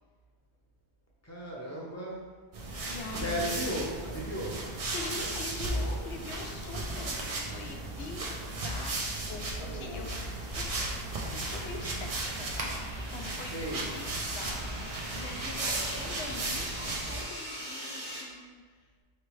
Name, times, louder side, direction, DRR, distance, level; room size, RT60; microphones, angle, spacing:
voice 1, 1.2-2.3 3.1-4.6 13.5-14.1, equal, 15° left, -5 dB, 0.7 m, -35 dB
sound 1, 2.5-17.2, right 2 dB, 45° right, 0.5 m, -35 dB
voice 2, 2.9-3.7 4.9-8.9 9.3-10.7 11.3-12.8 13.1-13.5 13.9-14.1 14.3-18.6, left 4 dB, 80° left, 3 dB, 0.9 m, -44 dB
Fowl, 9.3-14.6, equal, 50° left, 1.0 m, -44 dB
sound 2, 9.3-18.2, equal, 80° right, 1.6 m, -43 dB
4.3 x 3.3 x 3.2 m, 1.5 s
omnidirectional pair, 1.1 m